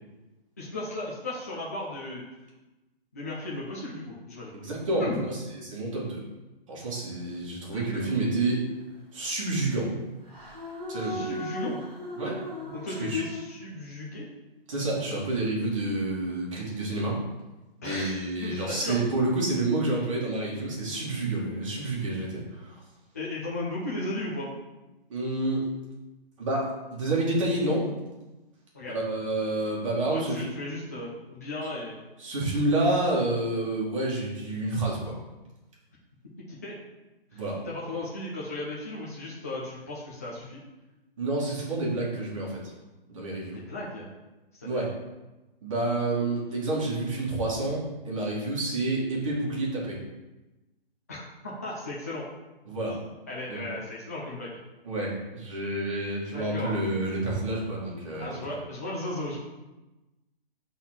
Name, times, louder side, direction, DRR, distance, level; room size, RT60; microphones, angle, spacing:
voice 1, 0.6-2.2 3.1-4.6 5.0-5.2 7.7-8.1 11.0-11.8 12.7-14.3 17.8-19.0 23.1-24.5 28.7-29.0 30.1-32.0 36.5-36.7 37.3-40.6 43.5-44.1 44.6-44.8 51.1-52.3 52.9-53.0 53.3-54.6 56.3-56.8 58.2-59.4, left 2 dB, 15° left, -6 dB, 0.6 m, -36 dB
voice 2, 4.5-5.4 5.6-6.2 6.7-8.7 9.1-9.9 10.9-11.2 12.2-12.4 12.9-13.2 14.7-17.2 17.8-22.8 25.1-25.7 26.4-27.9 28.9-30.5 32.2-35.1 37.3-37.6 41.2-42.6 43.1-43.6 44.6-44.9 45.6-50.0 52.7-53.0 53.5-53.6 54.9-58.6, right 2 dB, 30° right, -4 dB, 1.9 m, -29 dB
sound 1, 8.1-8.8 10.3-13.4, equal, 5° right, 2.4 m, -38 dB
5.7 x 4.0 x 6.1 m, 1.1 s
hypercardioid pair, 175°, 30 cm